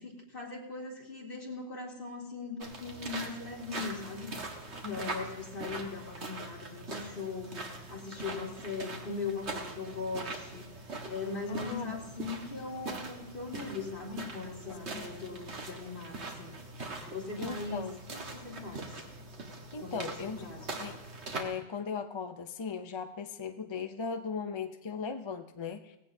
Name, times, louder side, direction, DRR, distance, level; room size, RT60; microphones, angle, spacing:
voice 1, 0.0-4.3 4.9-10.7 11.0-16.5 17.1-17.9 18.3-18.9 19.8-20.7, left 4 dB, 55° left, -2 dB, 2.6 m, -40 dB
sound 1, 2.6-21.4, right 3 dB, 80° right, 1.8 m, -42 dB
voice 2, 4.8-5.3 11.5-12.0 14.9-15.1 17.4-18.0 19.7-21.0 21.3-26.0, left 5 dB, 35° left, 8 dB, 0.5 m, -38 dB
18.5 x 16.0 x 2.7 m, 0.95 s
omnidirectional pair, 1.1 m